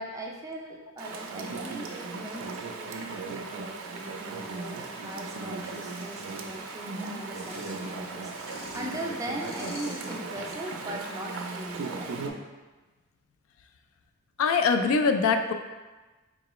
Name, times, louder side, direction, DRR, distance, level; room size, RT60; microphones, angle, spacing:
voice 1, 0.0-12.2, right 1 dB, 15° right, 0 dB, 0.3 m, -40 dB
Chatter / Stream, 1.0-12.3, right 4 dB, 90° right, 0.4 m, -37 dB
sound 1, 4.0-10.5, left 1 dB, 45° left, 0.7 m, -47 dB
voice 2, 14.4-15.5, left 5 dB, 80° left, 7 dB, 0.3 m, -23 dB
3.8 x 3.0 x 3.0 m, 1.2 s
head